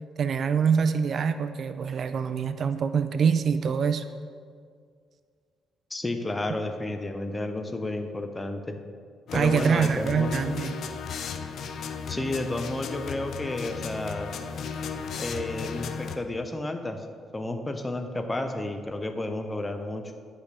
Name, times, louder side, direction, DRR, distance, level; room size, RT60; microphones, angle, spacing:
voice 1, 0.2-4.0 9.3-10.7, right 6 dB, 55° right, 11 dB, 0.3 m, -25 dB
voice 2, 5.9-8.7 9.3-10.4 12.1-14.3 15.2-17.1 17.3-20.0, left 2 dB, 20° left, 6 dB, 0.7 m, -31 dB
sound 1, 9.3-16.2, left 6 dB, 65° left, 0.5 m, -35 dB
10.5 x 4.9 x 3.4 m, 2.1 s
cardioid pair, 90°, 0 cm